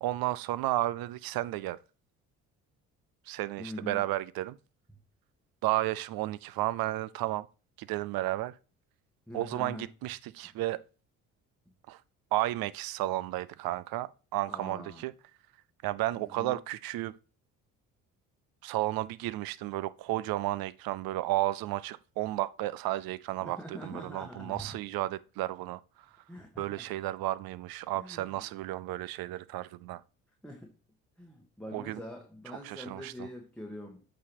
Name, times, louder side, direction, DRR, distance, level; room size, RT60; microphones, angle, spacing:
voice 1, 0.0-1.8 3.3-4.6 5.6-7.5 7.8-8.6 9.3-10.8 11.9-12.0 12.3-15.1 15.8-17.2 18.6-26.1 26.6-30.0 31.7-32.0 32.5-33.3, right 16 dB, 65° right, 0.6 m, -33 dB
voice 2, 3.6-4.0 9.3-9.9 14.5-15.0 16.2-16.6 23.4-24.8 26.3-26.9 27.9-28.4 30.4-30.7 31.2-34.0, left 1 dB, 5° left, 1.4 m, -44 dB
8.2 x 3.1 x 4.7 m
hypercardioid pair, 60°, 39 cm